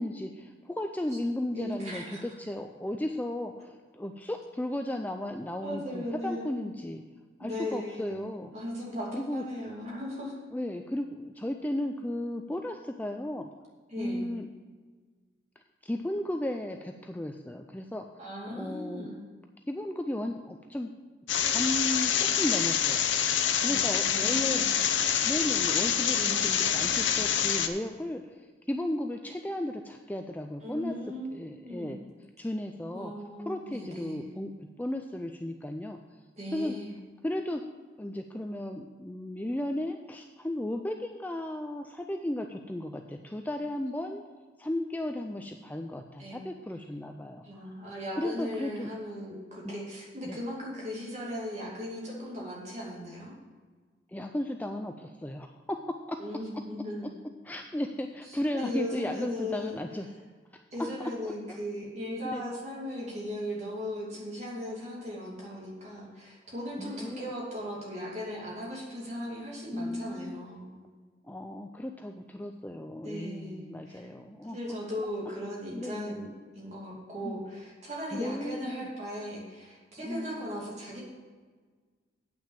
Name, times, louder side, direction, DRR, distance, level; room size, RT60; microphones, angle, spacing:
voice 1, 0.0-7.0 7.4-8.5 9.1-9.4 10.5-13.5 14.0-14.5 15.8-19.1 19.7-20.9 21.4-23.1 23.6-24.6 25.2-30.9 31.3-32.0 32.4-33.1 33.5-36.2 36.5-36.8 37.2-37.6 38.0-44.2 44.6-47.4 48.2-48.9 49.6-49.8 50.2-50.4 54.1-55.8 56.1-56.2 57.4-60.1 60.5-61.1 61.5-61.6 62.2-62.4 66.8-67.3 69.7-70.5 71.2-74.6 75.7-76.2 77.2-77.5 78.1-78.9 80.0-80.4, left 1 dB, 10° left, 5 dB, 0.3 m, -35 dB
voice 2, 1.5-2.2 5.6-6.6 7.4-10.3 13.9-14.3 18.2-19.2 23.5-24.7 26.2-26.5 30.6-32.0 32.9-34.2 36.4-36.9 46.2-46.4 47.4-53.4 56.2-57.1 58.5-59.8 60.7-70.7 73.0-74.1 74.4-76.3 76.5-81.0, equal, 35° right, -3 dB, 2.6 m, -38 dB
sound 1, 21.3-27.7, left 8 dB, 80° left, 0.7 m, -26 dB
8.6 x 6.0 x 7.3 m, 1.5 s
head